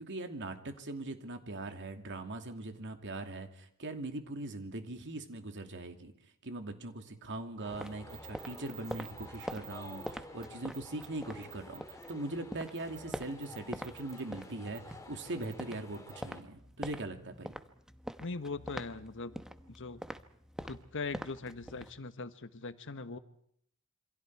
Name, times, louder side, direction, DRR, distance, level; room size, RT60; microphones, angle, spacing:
voice 1, 0.0-6.1 6.4-17.5, right 2 dB, 55° right, 6 dB, 2.6 m, -41 dB
sound 1, 7.6-16.4, left 1 dB, 15° left, 3.0 m, -50 dB
sound 2, 7.7-12.1 12.4-13.9 14.2-22.0, equal, 5° right, 1.0 m, -45 dB
sound 3, 8.1-10.1 10.4-10.5 10.7-11.1 11.4-12.1 12.8-13.0 13.4-14.2 14.7-14.8 15.4-15.5 15.9-16.1, right 15 dB, 70° right, 1.4 m, -51 dB
voice 2, 18.2-19.4 19.7-20.0 20.6-23.2, left 3 dB, 60° left, 11 dB, 1.3 m, -41 dB
28.0 x 26.0 x 4.8 m, 0.67 s
head